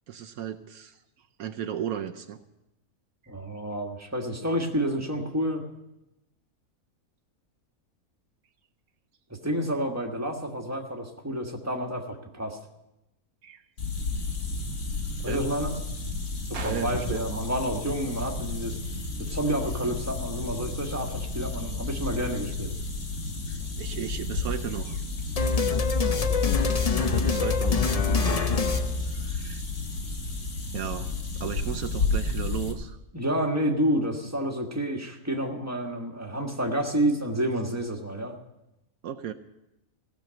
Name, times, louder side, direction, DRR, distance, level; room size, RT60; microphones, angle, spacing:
voice 1, 0.1-1.0 1.4-2.4 13.4-13.6 15.2-15.5 16.5-17.4 23.5-25.0 27.0-27.9 29.1-29.6 30.7-31.1 31.4-33.0 39.0-39.3, right 9 dB, 75° right, 6 dB, 1.1 m, -35 dB
voice 2, 3.3-5.6 9.3-12.6 15.2-15.8 16.5-18.8 19.2-22.7 33.1-38.4, equal, 10° right, 1 dB, 1.4 m, -29 dB
sound 1, 13.8-32.7, left 3 dB, 85° left, 2.3 m, -32 dB
sound 2, 25.4-29.7, left 5 dB, 50° left, 0.4 m, -25 dB
16.5 x 6.7 x 8.8 m, 0.92 s
omnidirectional pair, 1.6 m